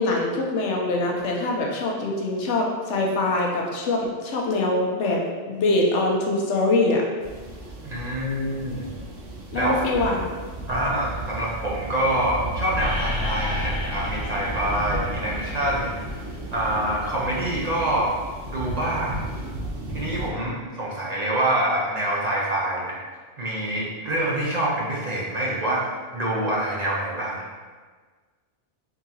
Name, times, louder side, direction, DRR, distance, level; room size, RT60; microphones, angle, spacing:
voice 1, 0.0-7.0 9.5-10.3, left 2 dB, 80° left, -1 dB, 1.0 m, -23 dB
sound 1, 7.2-20.3, right 1 dB, 80° right, 1.0 m, -34 dB
voice 2, 7.8-8.9 9.5-9.8 10.7-16.0 16.5-18.1 18.5-19.2 19.9-23.0 23.4-27.4, right 1 dB, 45° right, -5 dB, 0.6 m, -26 dB
sound 2, 12.8-16.6, left 2 dB, 60° right, 1.7 m, -32 dB
3.7 x 3.6 x 2.8 m, 1.5 s
omnidirectional pair, 1.2 m